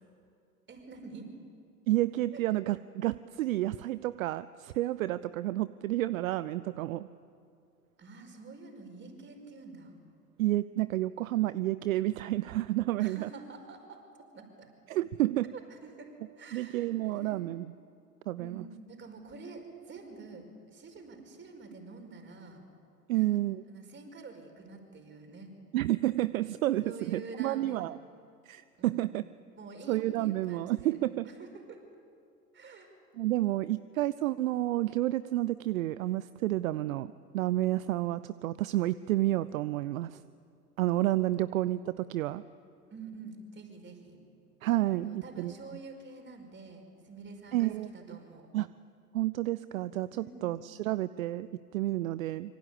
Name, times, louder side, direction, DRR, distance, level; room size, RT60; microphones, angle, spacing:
voice 1, 0.7-1.4 2.3-2.4 8.0-9.9 13.0-14.7 15.5-17.5 18.4-20.5 20.7-22.6 23.1-23.4 23.7-25.5 26.8-27.9 28.8-29.2 29.6-31.0 31.2-31.8 32.5-32.9 42.9-44.2 44.9-48.5 50.1-50.5, right 4 dB, 25° right, 5 dB, 5.4 m, -47 dB
voice 2, 1.9-7.1 10.4-13.3 14.9-15.5 16.5-17.7 18.3-18.6 23.1-23.6 25.7-28.0 28.4-29.2 29.9-31.3 33.1-40.2 40.8-42.4 44.6-45.5 47.5-48.2 48.5-48.7 49.1-52.6, right 15 dB, 60° right, 16 dB, 0.7 m, -30 dB
26.5 x 24.5 x 8.5 m, 2.4 s
figure-of-eight pair, 85°, 46 cm